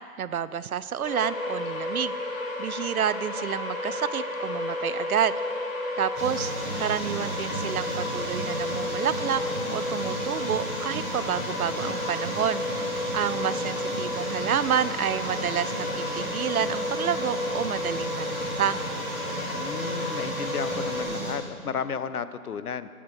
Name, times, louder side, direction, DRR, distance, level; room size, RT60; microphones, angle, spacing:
voice 1, 0.2-5.4 6.0-9.4 9.7-18.8, right 8 dB, 70° right, 16 dB, 0.6 m, -29 dB
sound 1, 1.0-21.0, left 2 dB, 60° left, 2.3 m, -32 dB
sound 2, 6.1-21.4, right 1 dB, 10° right, 0.9 m, -35 dB
voice 2, 19.5-22.9, left 7 dB, 80° left, 13 dB, 0.7 m, -33 dB
12.0 x 8.6 x 5.3 m, 2.4 s
figure-of-eight pair, 150°, 44 cm